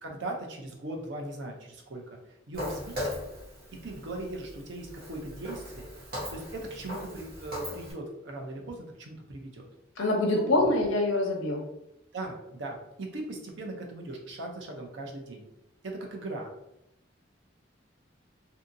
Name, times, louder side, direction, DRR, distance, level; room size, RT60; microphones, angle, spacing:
voice 1, 0.0-2.2 2.5-3.1 3.8-5.9 6.3-9.6 10.3-10.7 12.1-15.5 15.8-16.5, right 2 dB, 65° right, 1 dB, 0.6 m, -39 dB
Walk footsteps, 2.5-7.9, left 1 dB, 50° right, 1.0 m, -39 dB
voice 2, 10.0-11.6, left 2 dB, 85° left, 1 dB, 0.7 m, -25 dB
2.7 x 2.6 x 2.5 m, 0.86 s
head